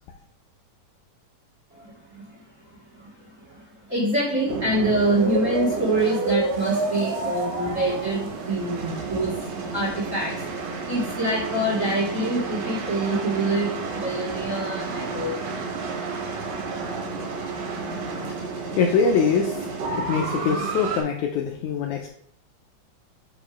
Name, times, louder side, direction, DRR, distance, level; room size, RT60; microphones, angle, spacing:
voice 1, 1.7-2.4 2.9-3.1 3.5-3.6 3.9-9.4 9.7-10.3 10.9-15.3, right 1 dB, 30° right, -4 dB, 1.6 m, -25 dB
sound 1, 4.5-21.0, right 3 dB, 75° right, 2.8 m, -30 dB
voice 2, 18.4-19.7 20.0-22.1, left 6 dB, 80° left, 3 dB, 1.8 m, -23 dB
5.6 x 5.1 x 5.0 m, 0.65 s
omnidirectional pair, 3.9 m